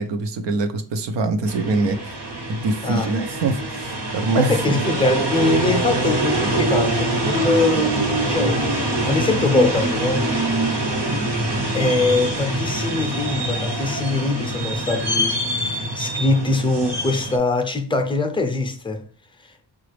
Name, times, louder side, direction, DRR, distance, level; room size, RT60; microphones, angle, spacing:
voice 1, 0.0-2.2 2.5-4.8, right 3 dB, 85° right, 0.7 m, -24 dB
sound 1, 1.5-17.4, right 1 dB, 70° right, 1.2 m, -24 dB
voice 2, 4.3-10.3 11.7-19.0, left 3 dB, 10° left, 0.5 m, -23 dB
5.0 x 2.4 x 3.3 m
wide cardioid pair, 155°, 42 cm